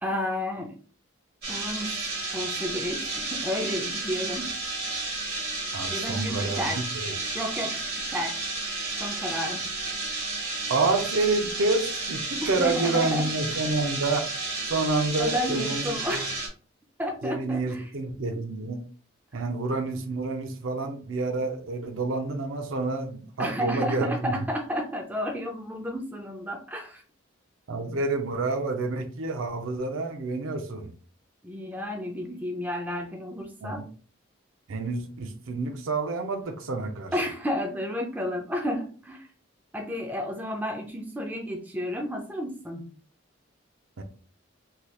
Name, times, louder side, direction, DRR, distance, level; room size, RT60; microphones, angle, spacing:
voice 1, 0.0-0.7 1.5-4.5 5.9-6.9 7.3-8.4 9.0-9.7 12.4-13.2 15.2-16.3 17.0-17.8 23.4-27.0 31.4-33.9 37.1-39.3 39.7-42.8, equal, 10° right, 1 dB, 0.4 m, -32 dB
sound 1, 1.4-16.5, right 3 dB, 50° right, 1.2 m, -32 dB
voice 2, 5.7-7.2 10.7-14.3 14.7-16.2 17.2-18.8 19.3-24.3 27.7-30.9 33.6-33.9 34.7-37.1 44.0-44.1, right 3 dB, 85° right, 5 dB, 0.5 m, -28 dB
3.2 x 2.9 x 2.3 m, 0.41 s
head